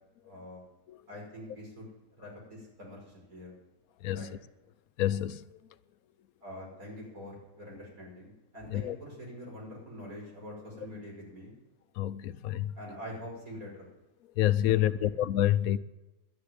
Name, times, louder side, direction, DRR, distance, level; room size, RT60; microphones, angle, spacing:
voice 1, 0.3-0.6 1.1-1.9 2.2-3.5 4.1-4.3 6.4-11.5 12.8-13.9 14.7-15.1, equal, 80° right, 6.1 m, -45 dB
voice 2, 5.0-5.4 8.7-9.0 12.0-12.7 14.4-15.8, left 12 dB, 80° left, 1.1 m, -27 dB
11.5 x 10.0 x 9.4 m
omnidirectional pair, 1.5 m